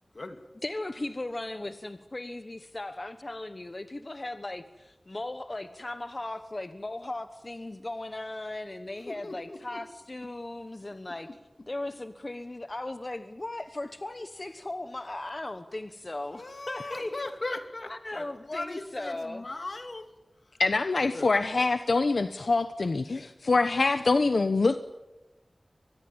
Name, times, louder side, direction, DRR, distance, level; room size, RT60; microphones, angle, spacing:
voice 1, 0.6-11.3 11.7-17.2 17.9-19.4, left 2 dB, 40° left, 1.2 m, -37 dB
voice 2, 9.1-9.8 11.2-11.3 16.3-20.1 21.0-21.4, left 2 dB, 60° left, 2.8 m, -38 dB
voice 3, 20.6-24.8, left 3 dB, 80° left, 1.0 m, -25 dB
24.5 x 20.5 x 8.9 m
wide cardioid pair, 55°, 0 cm